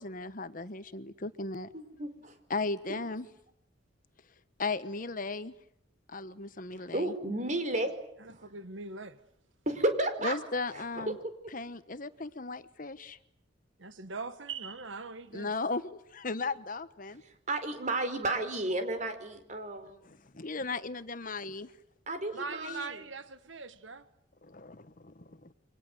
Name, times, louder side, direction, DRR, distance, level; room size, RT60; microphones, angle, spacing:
voice 1, 0.0-1.7 2.5-3.3 4.6-5.5 6.1-7.1 10.2-11.2 11.5-13.2 15.3-17.2 20.0-21.7 22.6-22.8 24.4-25.5, left 3 dB, 45° left, 1.2 m, -36 dB
voice 2, 1.7-2.4 2.9-3.0 6.8-7.9 8.3-8.5 9.7-10.3 10.7-11.1 17.5-20.0 22.1-23.0, right 2 dB, 40° right, 4.6 m, -32 dB
voice 3, 8.2-9.2 13.8-15.5 22.3-24.1, right 4 dB, 80° right, 1.5 m, -41 dB
28.5 x 25.0 x 7.9 m
head